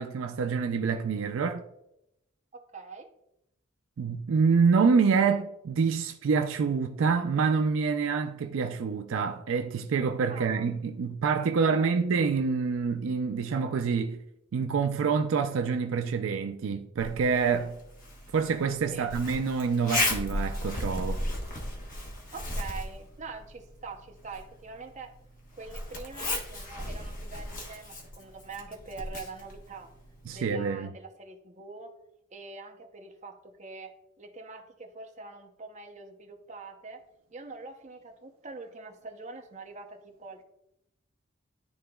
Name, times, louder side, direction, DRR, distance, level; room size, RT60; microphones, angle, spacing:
voice 1, 0.0-1.6 4.0-14.2 14.5-17.8 18.3-21.2 30.3-30.9, right 5 dB, 75° right, 0.4 m, -26 dB
voice 2, 2.5-3.1 10.3-10.6 11.7-11.9 18.9-19.1 22.3-25.1 25.6-29.9 30.3-31.9 32.3-37.0 37.3-40.4, right 3 dB, 35° right, 0.7 m, -44 dB
Zipper (clothing), 17.0-30.5, left 1 dB, 40° left, 1.1 m, -36 dB
11.0 x 3.8 x 2.3 m
head